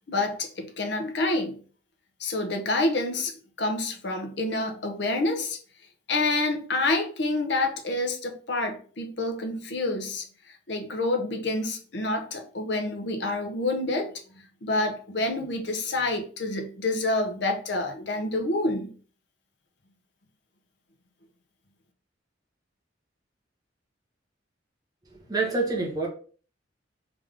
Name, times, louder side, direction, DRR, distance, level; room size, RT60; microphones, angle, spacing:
voice 1, 0.1-1.6 2.2-3.3 3.6-5.6 6.1-18.9, left 2 dB, 65° left, 0.8 m, -28 dB
voice 2, 25.1-26.1, right 3 dB, 20° right, 1.1 m, -27 dB
3.6 x 3.4 x 3.4 m
head